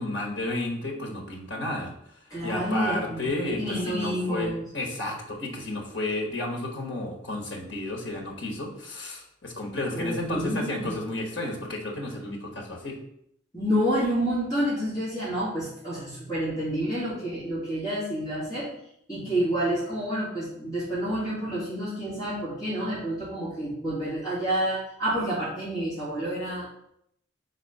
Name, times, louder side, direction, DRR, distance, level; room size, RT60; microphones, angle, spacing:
voice 1, 0.0-1.9 2.4-13.0, left 2 dB, 65° left, 1 dB, 1.3 m, -32 dB
voice 2, 2.3-4.6 9.9-10.9 13.5-18.7 19.1-26.7, equal, 20° left, -10 dB, 2.5 m, -29 dB
4.2 x 4.2 x 5.3 m, 0.73 s
head